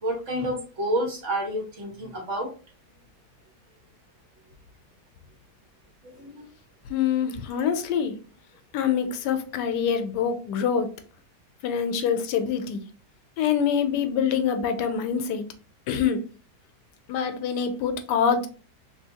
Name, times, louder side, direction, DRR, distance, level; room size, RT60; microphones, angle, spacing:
voice 1, 0.0-2.5 6.0-6.4, right 1 dB, 50° right, 1.3 m, -29 dB
voice 2, 6.9-8.1 8.7-10.9 11.6-12.8 13.4-15.4 15.9-16.2 17.1-18.5, left 7 dB, 85° left, 1.2 m, -25 dB
3.2 x 2.7 x 2.8 m
omnidirectional pair, 1.8 m